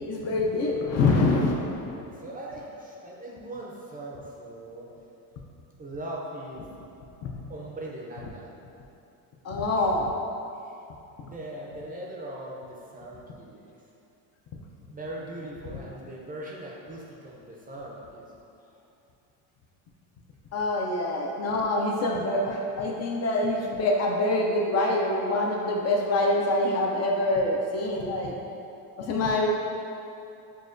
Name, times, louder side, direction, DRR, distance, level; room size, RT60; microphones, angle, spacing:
voice 1, 0.1-1.6 7.2-7.4 9.4-10.1 20.5-28.3 29.0-29.5, left 2 dB, 45° left, -1 dB, 0.4 m, -25 dB
voice 2, 1.9-4.9 5.8-6.7 7.5-8.5 9.7-10.0 10.6-10.8 11.2-13.8 14.9-18.3, right 1 dB, 25° right, -3 dB, 0.5 m, -40 dB
6.3 x 2.2 x 2.5 m, 2.8 s
cardioid pair, 110°, 38 cm